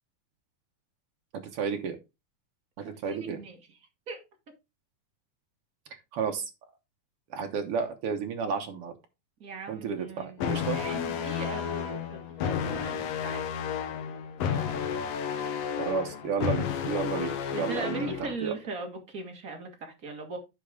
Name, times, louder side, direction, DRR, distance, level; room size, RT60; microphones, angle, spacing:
voice 1, 1.5-2.0 2.8-3.4 5.9-6.5 7.3-8.9 9.7-10.8 15.8-18.5, right 6 dB, 80° right, 1.2 m, -32 dB
voice 2, 2.8-3.6 4.1-4.2 9.4-13.5 17.1-20.4, right 3 dB, 35° right, 1.4 m, -39 dB
sound 1, 10.4-18.4, left 7 dB, 75° left, 1.5 m, -32 dB
10.0 x 5.2 x 3.6 m
omnidirectional pair, 4.1 m